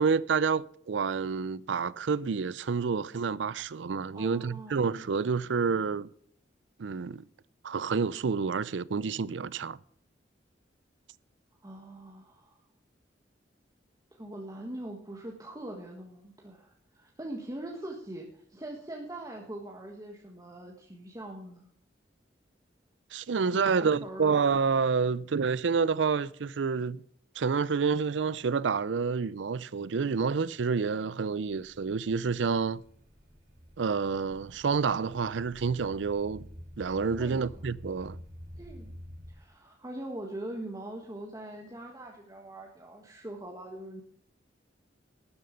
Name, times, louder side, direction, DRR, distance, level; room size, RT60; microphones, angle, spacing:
voice 1, 0.0-6.1 6.8-7.2 7.6-9.8 23.1-27.0 27.4-32.8 33.8-36.4 36.8-38.2, right 5 dB, 85° right, 0.5 m, -28 dB
voice 2, 4.1-4.8 11.6-12.6 14.1-21.7 23.5-24.4 37.2-37.6 38.6-38.9 39.3-44.0, right 1 dB, 20° right, 1.5 m, -42 dB
sound 1, 31.5-39.3, equal, 50° right, 2.5 m, -49 dB
12.5 x 11.0 x 5.1 m
head